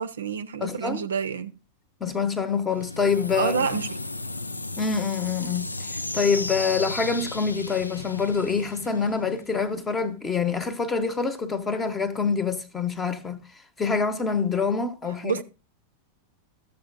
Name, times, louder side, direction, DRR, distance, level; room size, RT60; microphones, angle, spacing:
voice 1, 0.0-1.6 3.3-3.9 15.2-15.4, right 6 dB, 70° right, 0.5 m, -28 dB
voice 2, 0.6-1.1 2.0-3.8 4.8-5.8 6.1-13.4 13.8-15.4, left 5 dB, 15° left, 0.9 m, -26 dB
sound 1, 2.7-9.6, left 2 dB, 80° left, 0.4 m, -34 dB
14.0 x 7.2 x 2.5 m
figure-of-eight pair, 90°, 0 cm